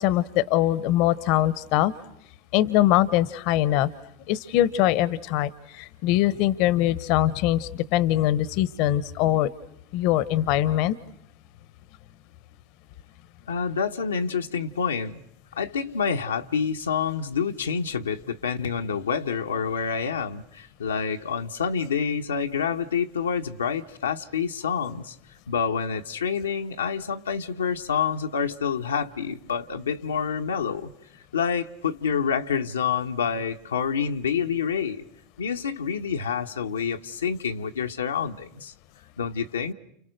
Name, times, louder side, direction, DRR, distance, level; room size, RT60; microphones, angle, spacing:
voice 1, 0.0-1.9 2.5-3.9 4.3-9.5 9.9-11.0, left 13 dB, 60° left, 1.0 m, -22 dB
voice 2, 13.5-15.2 15.6-25.1 25.5-30.9 31.3-35.0 35.4-38.7 39.2-39.7, left 6 dB, 90° left, 1.1 m, -27 dB
30.0 x 29.5 x 6.6 m
hypercardioid pair, 90°, 0 cm